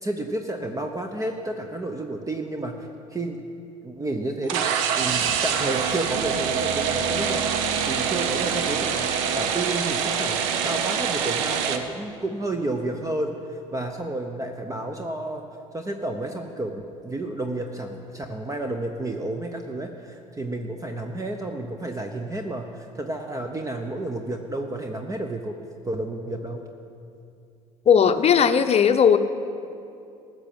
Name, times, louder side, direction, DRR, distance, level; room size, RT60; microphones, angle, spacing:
voice 1, 0.0-3.4 3.8-4.7 5.0-15.4 15.7-25.6 25.8-26.6, right 2 dB, 20° right, 4 dB, 1.0 m, -31 dB
sound 1, 4.5-11.8, right 7 dB, 75° right, 0.9 m, -25 dB
voice 2, 27.9-29.2, left 7 dB, 40° left, 10 dB, 0.8 m, -17 dB
15.0 x 6.3 x 8.8 m, 2.6 s
hypercardioid pair, 65°, 17 cm